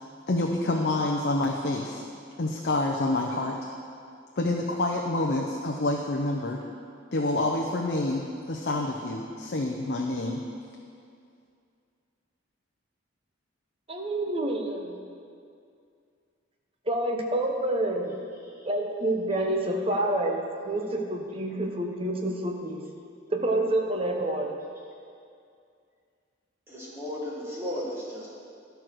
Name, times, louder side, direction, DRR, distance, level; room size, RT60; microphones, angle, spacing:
voice 1, 0.3-2.0 2.4-3.6 4.4-6.6 7.1-10.4, left 2 dB, 55° left, 0 dB, 0.6 m, -27 dB
voice 2, 13.9-14.9 16.9-18.2 18.7-22.8 23.3-24.5, right 1 dB, 30° right, 2 dB, 0.9 m, -28 dB
voice 3, 26.7-28.3, left 1 dB, 10° right, -6 dB, 1.4 m, -35 dB
12.5 x 4.6 x 6.2 m, 2.4 s
head